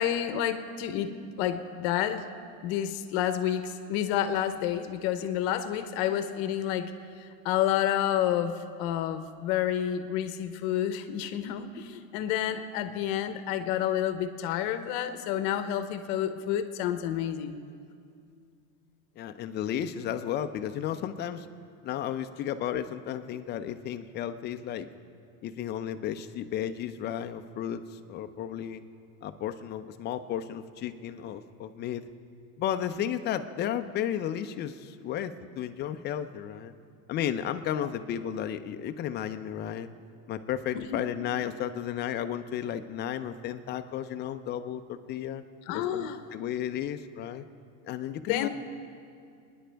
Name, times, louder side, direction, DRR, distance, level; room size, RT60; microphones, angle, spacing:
voice 1, 0.0-2.2 2.6-6.9 7.2-17.6 40.7-41.0 45.7-46.2 48.3-48.5, left 10 dB, 55° left, 10 dB, 0.9 m, -29 dB
voice 2, 19.2-21.5 21.8-24.9 25.4-28.8 29.2-32.0 32.6-36.7 37.1-39.9 40.3-45.4 45.7-47.5 47.8-48.5, left 10 dB, 25° left, 9 dB, 0.4 m, -33 dB
30.0 x 10.5 x 3.4 m, 2.4 s
supercardioid pair, 145°, 43 cm